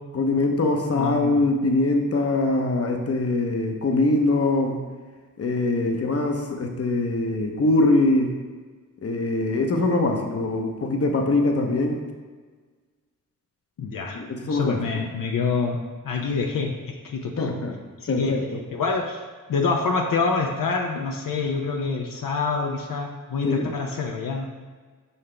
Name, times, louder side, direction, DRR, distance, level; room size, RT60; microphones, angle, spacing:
voice 1, 0.1-4.8 5.4-8.3 9.0-12.0 14.1-14.8 17.4-17.7 18.1-18.5 23.4-23.7, left 2 dB, 45° left, 2 dB, 0.9 m, -23 dB
voice 2, 1.0-1.4 13.8-14.2 14.5-15.8 16.0-17.6 18.0-18.4 18.7-19.2 19.5-24.5, left 4 dB, 75° left, 1 dB, 0.7 m, -26 dB
5.7 x 5.6 x 3.3 m, 1.4 s
cardioid pair, 75°, 33 cm